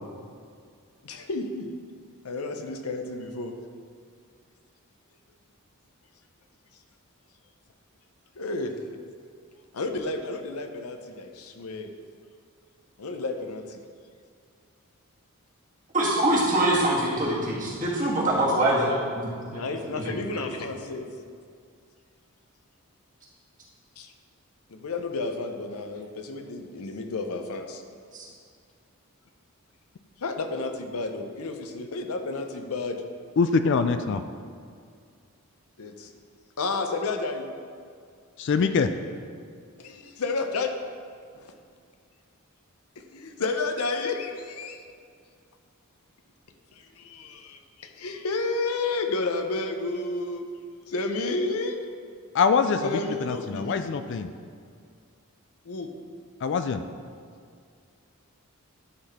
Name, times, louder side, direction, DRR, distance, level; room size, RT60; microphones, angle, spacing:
voice 1, 1.0-1.7 2.2-3.5 8.3-8.7 9.7-11.9 13.0-13.8 19.5-21.0 24.0-24.1 24.7-27.8 30.2-33.0 35.8-36.1 36.6-37.5 39.8-40.7 41.4-41.5 43.1-44.8 46.7-50.5 50.9-51.8 52.8-53.8 55.6-55.9, left 3 dB, 85° left, 5 dB, 0.7 m, -31 dB
voice 2, 15.9-19.6 20.0-20.4 28.1-28.3, right 1 dB, 35° right, -5 dB, 1.6 m, -24 dB
voice 3, 33.4-34.2 38.4-38.9 52.3-52.9 53.2-54.3 56.4-56.8, left 5 dB, 55° left, 9 dB, 0.3 m, -23 dB
11.0 x 4.1 x 4.2 m, 2.2 s
head